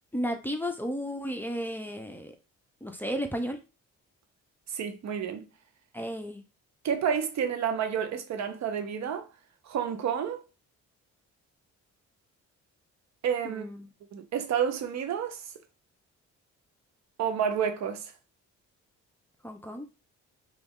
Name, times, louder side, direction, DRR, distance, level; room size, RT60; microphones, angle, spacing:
voice 1, 0.1-2.3 2.8-3.6 5.9-6.4 13.4-13.9 19.4-19.9, equal, 5° left, 0.5 m, -33 dB
voice 2, 4.7-5.5 6.8-9.3 9.7-10.4 13.2-13.6 14.1-15.4 17.2-18.1, right 8 dB, 65° right, 0.6 m, -29 dB
3.0 x 2.4 x 3.6 m
cardioid pair, 90°, 30 cm